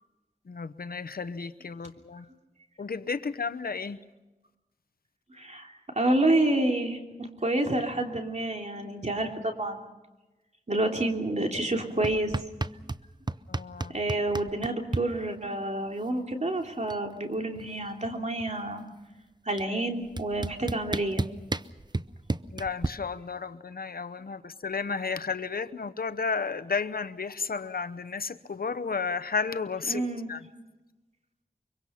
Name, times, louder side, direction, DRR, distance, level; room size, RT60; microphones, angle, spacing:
voice 1, 0.5-2.2 2.8-4.0 13.5-13.9 22.5-30.0 30.3-30.5, left 5 dB, 85° left, 0.8 m, -33 dB
voice 2, 5.3-9.8 10.7-12.4 13.9-18.8 19.4-21.3 29.9-30.3, right 1 dB, 50° right, 3.1 m, -29 dB
sound 1, 12.0-13.0 13.3-15.0 16.3-16.4 16.7-17.1 17.3-18.7 19.6-19.7 20.2-22.9, right 2 dB, 30° right, 0.6 m, -32 dB
24.5 x 24.0 x 5.8 m
wide cardioid pair, 45°, 15 cm